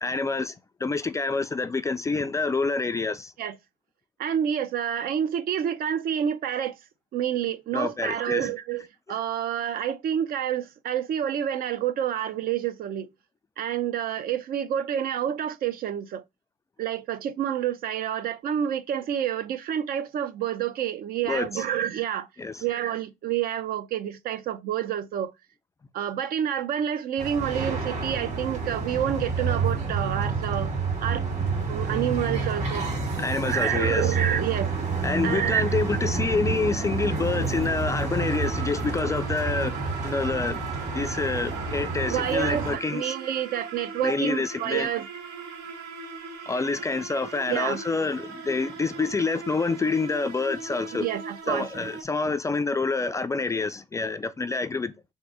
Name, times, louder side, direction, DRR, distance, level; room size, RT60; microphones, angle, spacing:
voice 1, 0.0-0.6 0.8-3.3 7.7-8.5 21.3-21.6 22.4-22.6 33.2-34.1 35.0-39.8 40.0-40.6 40.9-43.1 44.0-44.9 46.5-51.1 51.5-54.9, left 4 dB, 20° left, 0.3 m, -27 dB
voice 2, 4.2-6.8 7.1-13.1 13.6-16.2 16.8-22.3 22.6-25.3 25.9-30.7 31.0-31.3 31.7-32.9 33.5-34.7 35.2-35.8 42.1-45.1 47.5-47.8 50.9-51.7, right 10 dB, 60° right, 0.6 m, -28 dB
sound 1, 27.2-42.8, right 4 dB, 40° right, 2.3 m, -29 dB
sound 2, 38.2-52.0, right 4 dB, 80° right, 1.3 m, -39 dB
3.7 x 2.6 x 4.7 m
cardioid pair, 110°, 17 cm